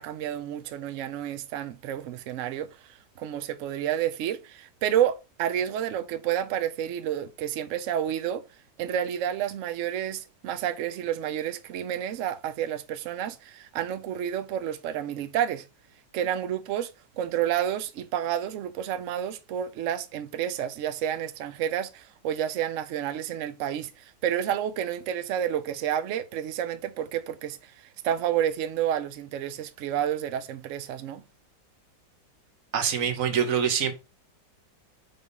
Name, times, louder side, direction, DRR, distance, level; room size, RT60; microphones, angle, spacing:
voice 1, 0.0-8.4 8.8-15.7 16.1-16.9 17.2-31.2, right 10 dB, 80° right, 0.7 m, -30 dB
voice 2, 32.7-33.9, right 7 dB, 55° right, 1.2 m, -25 dB
5.3 x 3.4 x 5.3 m
omnidirectional pair, 1.9 m